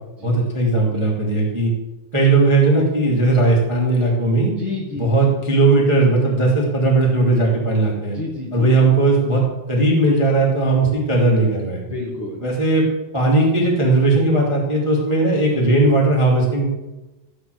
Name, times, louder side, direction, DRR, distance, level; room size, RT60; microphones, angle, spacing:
voice 1, 0.2-1.7 2.1-4.5 4.9-8.2 8.5-9.4 9.7-11.8 12.4-12.8 13.1-16.7, right 2 dB, 30° right, -2 dB, 0.5 m, -17 dB
voice 2, 4.6-5.3 8.1-8.7 11.9-12.4, left 3 dB, 85° left, -1 dB, 1.2 m, -29 dB
14.5 x 4.9 x 7.8 m, 1.0 s
omnidirectional pair, 5.2 m